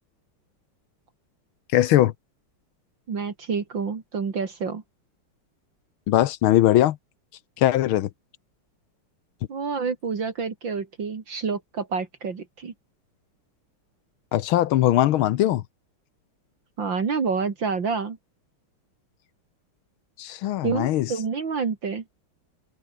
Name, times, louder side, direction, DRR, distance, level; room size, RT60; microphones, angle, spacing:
voice 1, 1.7-2.1 6.1-7.0 7.6-8.1 14.3-15.6 20.2-21.1, left 13 dB, 75° left, 1.6 m, -20 dB
voice 2, 3.1-4.8 9.5-12.7 16.8-18.2 20.6-22.0, right 5 dB, 60° right, 3.1 m, -28 dB
omnidirectional pair, 2.4 m